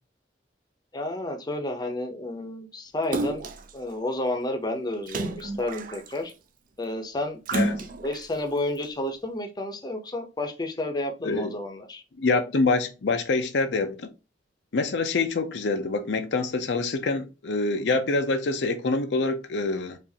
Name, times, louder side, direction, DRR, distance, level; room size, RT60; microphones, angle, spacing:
voice 1, 0.9-6.3 6.8-7.4 8.0-12.0, left 1 dB, 25° left, 0.7 m, -31 dB
Splash splatter, 3.1-3.7 5.1-6.3 7.5-8.2 8.8-8.9, right 2 dB, 50° right, 0.4 m, -30 dB
voice 2, 12.2-14.1 14.7-20.0, left 3 dB, 70° left, 0.5 m, -26 dB
4.7 x 2.5 x 2.7 m
head